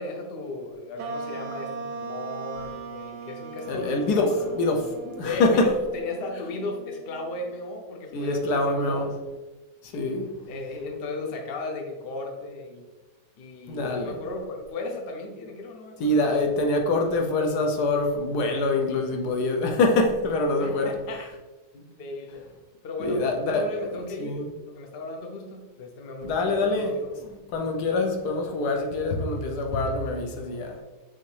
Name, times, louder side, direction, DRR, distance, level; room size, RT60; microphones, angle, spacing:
voice 1, 0.0-4.4 5.2-9.1 10.5-12.9 13.4-16.2 20.6-21.3 21.7-22.4 22.8-27.1, left 2 dB, 60° left, 0.6 m, -35 dB
sound 1, 1.0-7.7, right 4 dB, 90° right, 1.2 m, -39 dB
voice 2, 3.7-5.7 8.1-9.1 9.9-10.3 13.7-14.2 16.0-20.9 23.0-23.7 24.2-24.5 26.2-30.7, left 2 dB, 75° left, 1.2 m, -25 dB
5.6 x 2.6 x 3.3 m
omnidirectional pair, 1.8 m